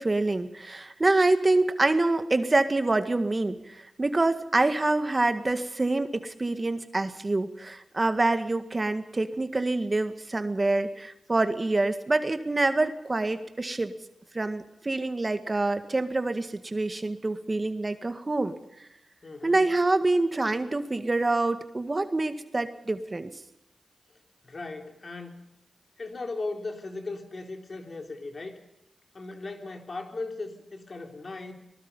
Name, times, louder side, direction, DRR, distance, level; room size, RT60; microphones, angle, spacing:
voice 1, 0.0-13.9 14.3-18.5 19.4-23.3, right 2 dB, 35° right, 9 dB, 1.8 m, -26 dB
voice 2, 19.2-19.7 24.4-25.5 26.0-28.6 29.1-31.5, left 3 dB, 55° left, 4 dB, 3.6 m, -37 dB
25.5 x 19.5 x 5.5 m, 0.84 s
cardioid pair, 40°, 0 cm